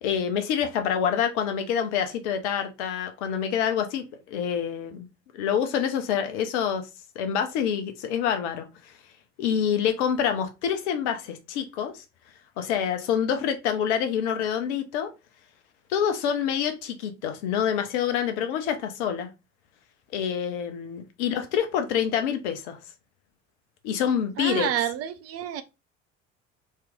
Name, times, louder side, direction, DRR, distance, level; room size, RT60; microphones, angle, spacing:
voice 1, 0.0-5.1 5.3-6.9 7.2-8.7 9.4-12.0 12.6-15.1 15.9-19.3 20.1-22.8 23.8-24.7, left 8 dB, 65° left, 0.8 m, -26 dB
voice 2, 24.4-25.6, right 11 dB, 40° right, 0.5 m, -28 dB
3.2 x 2.9 x 3.6 m
figure-of-eight pair, 60°, 37 cm